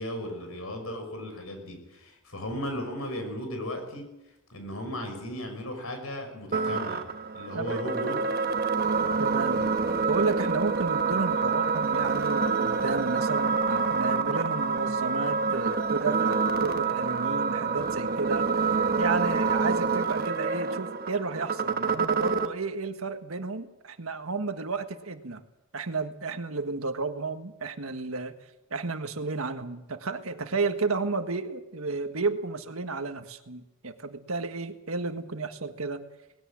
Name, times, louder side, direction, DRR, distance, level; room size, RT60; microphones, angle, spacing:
voice 1, 0.0-4.1 4.5-7.0 7.3-8.2 9.5-9.8, equal, 85° left, 6 dB, 6.1 m, -36 dB
sound 1, 6.5-22.5, right 4 dB, 45° right, 1.2 m, -27 dB
voice 2, 9.2-9.6 10.1-18.6 19.0-25.4 25.7-28.3 28.7-36.0, right 3 dB, 80° right, 8 dB, 1.6 m, -32 dB
20.0 x 16.5 x 8.7 m, 0.97 s
head